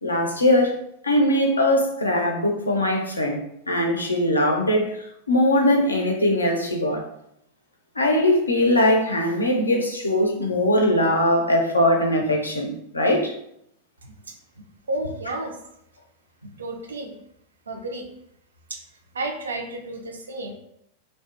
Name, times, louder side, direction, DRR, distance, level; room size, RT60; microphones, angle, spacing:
voice 1, 0.0-3.4 3.7-7.1 8.0-13.3 15.3-15.4 16.4-16.5, left 1 dB, 80° left, 2 dB, 0.4 m, -21 dB
voice 2, 14.9-15.6 16.6-17.2 17.7-18.1 18.7-18.8 19.1-20.5, right 2 dB, 70° right, 3 dB, 0.3 m, -31 dB
2.5 x 2.1 x 2.3 m, 0.73 s
figure-of-eight pair, 90°, 0 cm